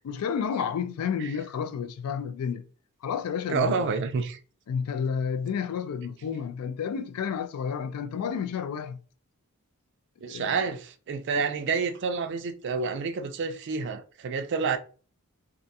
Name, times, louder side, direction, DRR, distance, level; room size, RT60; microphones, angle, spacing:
voice 1, 0.0-2.7 3.0-3.9 4.7-9.0 10.2-10.6, left 7 dB, 85° left, 0.3 m, -31 dB
voice 2, 3.5-4.4 10.2-14.8, right 5 dB, 50° right, 0.3 m, -29 dB
2.4 x 2.2 x 2.7 m
head